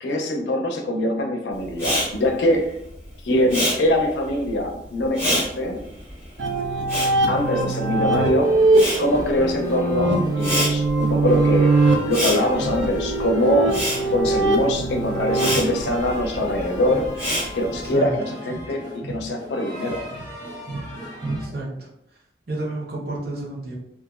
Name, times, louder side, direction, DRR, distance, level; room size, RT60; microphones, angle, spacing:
voice 1, 0.0-2.7 3.2-5.8 7.3-8.6 9.0-11.7 12.1-13.8 14.1-17.1 17.5-20.1, left 1 dB, 70° left, 2 dB, 0.5 m, -23 dB
Respiratory sounds, 1.7-8.2 8.5-17.9, equal, 15° left, 1.4 m, -28 dB
sound 1, 6.4-15.6, right 2 dB, 80° right, 0.4 m, -21 dB
sound 2, 8.4-21.5, right 1 dB, 25° right, 1.0 m, -36 dB
voice 2, 21.4-21.9 22.5-23.8, right 2 dB, 60° right, -4 dB, 0.8 m, -31 dB
2.9 x 2.3 x 2.3 m, 0.79 s
head